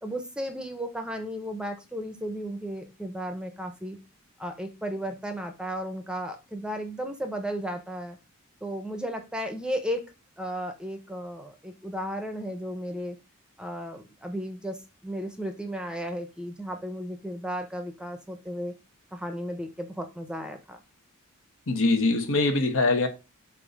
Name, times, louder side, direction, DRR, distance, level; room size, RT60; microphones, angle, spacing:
voice 1, 0.0-4.0 4.4-8.2 8.6-13.2 13.6-18.7 19.1-20.8, equal, 5° right, 0.8 m, -34 dB
voice 2, 21.7-23.1, left 3 dB, 65° left, 1.2 m, -23 dB
7.4 x 2.7 x 5.2 m
head